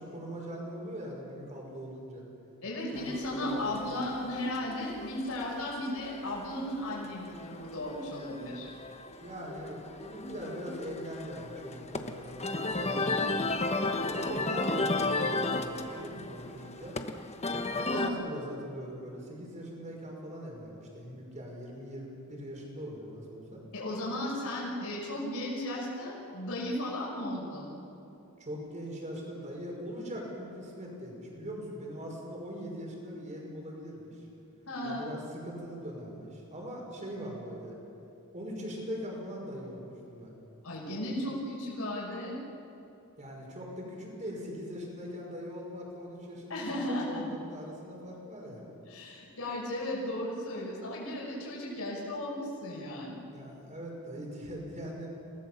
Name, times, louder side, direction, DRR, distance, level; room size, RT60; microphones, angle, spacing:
voice 1, 0.0-2.3 2.9-3.1 3.4-3.7 9.2-13.4 14.1-17.0 17.7-23.6 28.4-34.3 34.8-37.7 38.3-40.3 43.2-48.7 53.3-55.1, equal, 35° right, -1 dB, 5.7 m, -41 dB
voice 2, 2.6-8.7 17.8-18.1 23.7-27.8 34.7-35.1 40.6-42.4 46.5-47.2 48.9-53.2, left 1 dB, 70° left, -4 dB, 6.0 m, -35 dB
sound 1, 3.0-18.1, left 2 dB, 30° left, 1.1 m, -35 dB
28.5 x 18.0 x 7.1 m, 2.8 s
head